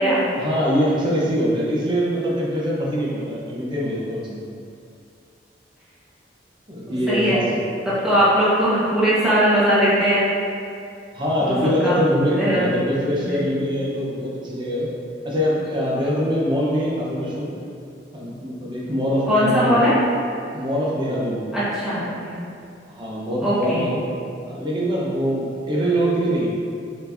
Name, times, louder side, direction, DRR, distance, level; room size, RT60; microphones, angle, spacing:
voice 1, 0.4-4.5 6.7-7.5 8.1-8.2 11.1-14.9 15.2-17.5 18.1-19.8 20.5-21.5 22.9-24.0 24.4-26.5, equal, 25° right, -6 dB, 0.8 m, -23 dB
voice 2, 7.9-10.2 11.4-12.0 12.3-12.7 13.2-13.4 19.3-19.9 21.5-22.3 23.4-23.9, equal, 5° right, -12 dB, 1.3 m, -20 dB
4.7 x 4.3 x 2.6 m, 2.4 s
head